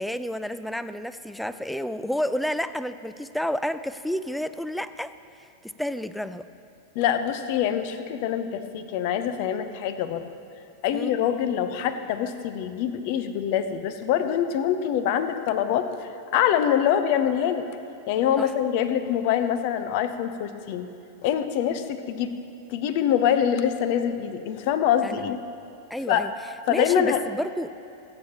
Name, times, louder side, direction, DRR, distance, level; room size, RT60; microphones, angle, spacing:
voice 1, 0.0-5.1 5.6-6.4 10.9-11.1 18.4-18.5 25.0-25.4 25.9-26.3 26.7-27.7, equal, ahead, 13 dB, 0.4 m, -30 dB
voice 2, 7.0-10.3 10.8-15.9 16.3-17.7 18.1-20.9 21.2-22.4 22.7-25.4 26.1-26.3 26.7-27.2, left 9 dB, 45° left, 11 dB, 0.7 m, -24 dB
25.5 x 8.8 x 2.9 m, 2.8 s
figure-of-eight pair, 90°, 0 cm